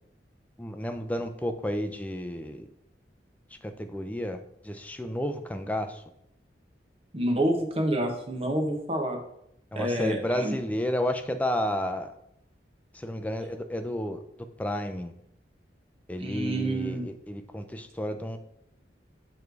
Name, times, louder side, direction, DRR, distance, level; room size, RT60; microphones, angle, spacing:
voice 1, 0.6-2.7 3.6-4.4 4.6-6.0 9.7-12.1 12.9-14.2 14.6-15.1 16.1-18.4, equal, 10° left, 6 dB, 0.4 m, -31 dB
voice 2, 7.1-9.2 9.7-10.6 16.2-17.1, right 1 dB, 30° right, 3 dB, 0.9 m, -28 dB
7.1 x 3.2 x 4.6 m, 0.76 s
head